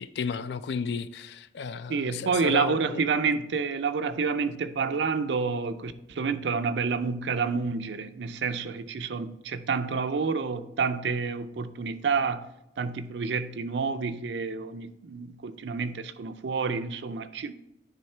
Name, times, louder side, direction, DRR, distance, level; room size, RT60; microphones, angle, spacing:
voice 1, 0.0-3.0, left 5 dB, 75° left, 0.4 m, -33 dB
voice 2, 1.9-12.5 12.8-17.5, right 5 dB, 90° right, 0.5 m, -29 dB
9.6 x 3.6 x 4.3 m
head